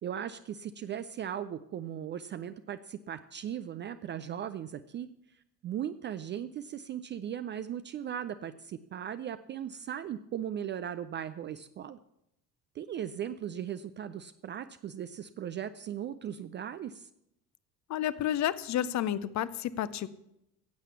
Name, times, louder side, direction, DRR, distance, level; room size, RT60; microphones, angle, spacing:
voice 1, 0.0-5.1 5.6-12.0 12.7-17.1, right 9 dB, 25° right, 12 dB, 0.4 m, -38 dB
voice 2, 17.9-20.1, left 11 dB, 35° left, 16 dB, 0.7 m, -31 dB
15.5 x 8.3 x 7.0 m, 0.82 s
figure-of-eight pair, 60°, 50 cm